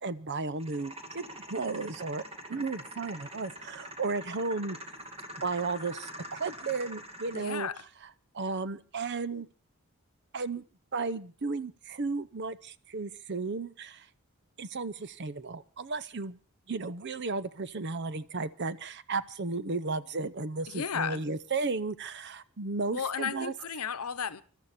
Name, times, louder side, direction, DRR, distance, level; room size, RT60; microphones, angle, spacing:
voice 1, 0.0-4.8 5.4-7.7 8.3-9.5 10.3-10.6 10.9-14.1 14.6-16.4 16.7-23.5, right 3 dB, 50° right, 0.7 m, -34 dB
sound 1, 0.6-7.6, equal, 25° right, 2.4 m, -45 dB
voice 2, 7.3-7.8 20.7-21.2 22.9-24.4, left 7 dB, 80° left, 0.9 m, -34 dB
24.0 x 12.5 x 4.2 m
head